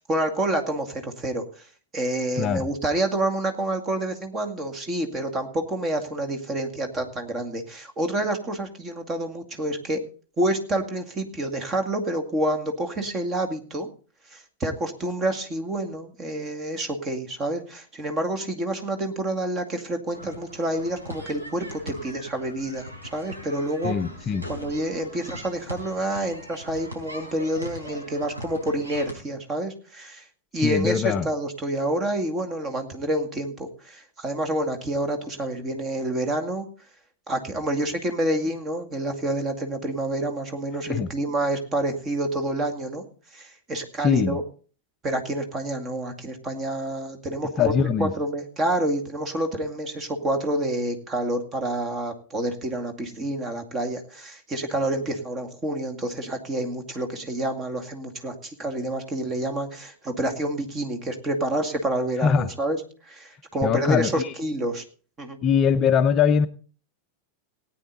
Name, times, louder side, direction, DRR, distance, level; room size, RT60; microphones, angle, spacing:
voice 1, 0.0-1.7 1.9-10.0 10.4-13.9 14.3-23.9 24.5-30.2 30.5-36.7 37.3-43.0 43.3-44.4 45.0-47.7 48.0-62.8 63.0-64.8 65.2-65.4, right 1 dB, 25° right, 6 dB, 2.1 m, -28 dB
voice 2, 2.4-2.7 23.8-24.4 30.6-31.3 40.8-41.1 44.0-44.4 47.6-48.1 62.2-62.5 63.6-64.3 65.4-66.5, left 7 dB, 30° left, 10 dB, 0.6 m, -22 dB
sound 1, 20.1-29.2, left 1 dB, 80° right, 4.4 m, -41 dB
18.5 x 9.3 x 4.0 m, 0.41 s
figure-of-eight pair, 90°, 0 cm